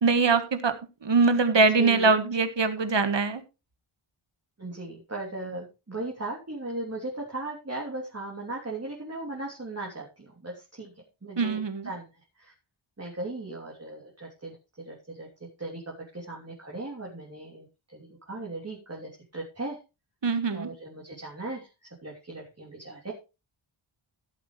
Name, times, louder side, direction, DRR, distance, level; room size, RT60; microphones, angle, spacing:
voice 1, 0.0-0.7 1.0-3.4 11.4-11.8 20.2-20.7, right 4 dB, 60° right, 10 dB, 1.7 m, -22 dB
voice 2, 1.5-2.2 4.6-12.1 12.4-12.5 13.0-15.3 15.6-19.8 20.5-23.1, right 2 dB, 30° right, -2 dB, 3.2 m, -38 dB
16.5 x 8.3 x 3.3 m, 0.28 s
wide cardioid pair, 95°, 50 cm